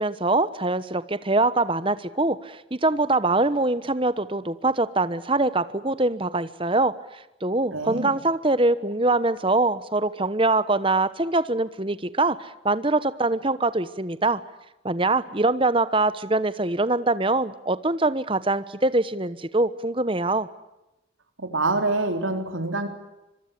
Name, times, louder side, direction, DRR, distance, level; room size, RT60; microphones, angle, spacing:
voice 1, 0.0-14.4 14.8-20.5, right 2 dB, 25° right, 14 dB, 1.1 m, -23 dB
voice 2, 7.7-8.1 21.4-22.9, right 2 dB, 80° right, 6 dB, 4.0 m, -26 dB
25.5 x 23.5 x 8.4 m, 0.94 s
head